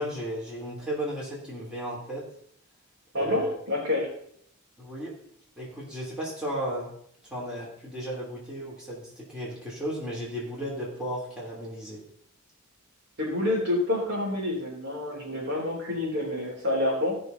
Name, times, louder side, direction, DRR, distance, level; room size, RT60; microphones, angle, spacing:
voice 1, 0.0-2.2 3.1-3.5 4.8-5.1 5.6-6.9 7.3-12.0, equal, 5° right, -6 dB, 3.1 m, -34 dB
voice 2, 3.1-4.2 13.2-17.2, left 2 dB, 55° right, -2 dB, 3.6 m, -28 dB
16.0 x 6.0 x 4.0 m, 0.67 s
head